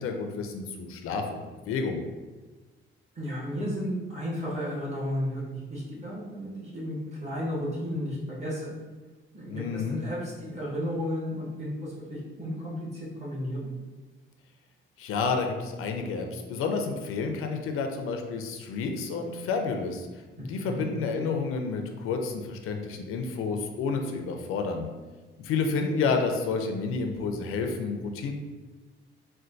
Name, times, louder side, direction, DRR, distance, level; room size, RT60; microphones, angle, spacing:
voice 1, 0.0-2.0 9.5-10.0 15.0-20.1 20.5-24.9 25.4-28.3, left 4 dB, 85° left, 4 dB, 0.5 m, -30 dB
voice 2, 3.1-5.4 5.7-8.7 9.3-13.7 20.4-20.9, equal, 30° right, -7 dB, 1.2 m, -33 dB
4.3 x 2.2 x 2.6 m, 1.3 s
cardioid pair, 175°, 21 cm